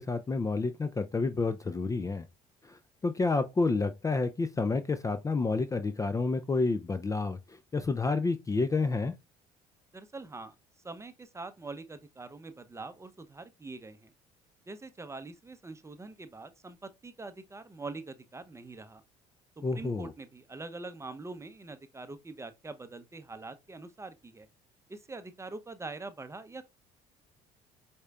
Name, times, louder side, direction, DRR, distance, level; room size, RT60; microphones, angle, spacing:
voice 1, 0.0-2.3 2.6-9.1 19.6-20.1, left 3 dB, 20° left, 0.4 m, -29 dB
voice 2, 9.9-10.5 10.8-14.1 14.7-19.0 19.8-24.5 24.9-26.6, right 3 dB, 15° right, 0.7 m, -44 dB
4.9 x 4.3 x 2.3 m
supercardioid pair, 75°, 17 cm